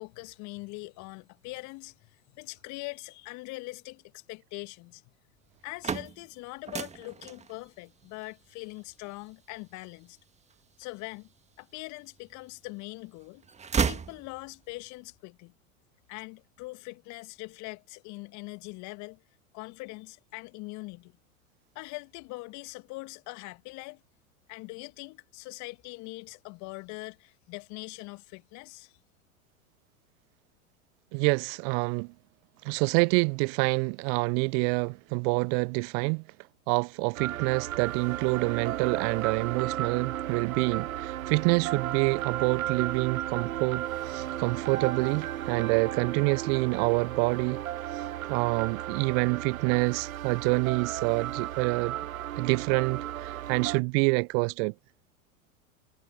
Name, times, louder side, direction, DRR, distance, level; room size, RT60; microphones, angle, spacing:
voice 1, 0.0-5.0 5.6-10.2 10.8-11.3 11.6-13.5 13.9-15.5 16.1-19.2 19.5-21.2 21.8-24.0 24.5-28.9, left 25 dB, 45° left, 2.1 m, -42 dB
sound 1, 5.5-11.5 12.0-12.9 13.2-14.8, right 6 dB, 15° right, 1.7 m, -35 dB
voice 2, 31.1-32.1 32.6-36.2 36.7-47.6 47.9-52.0 52.4-54.7, right 37 dB, 40° right, 0.9 m, -27 dB
sound 2, 37.1-53.8, right 12 dB, 75° right, 0.6 m, -34 dB
figure-of-eight pair, 90°, 42 cm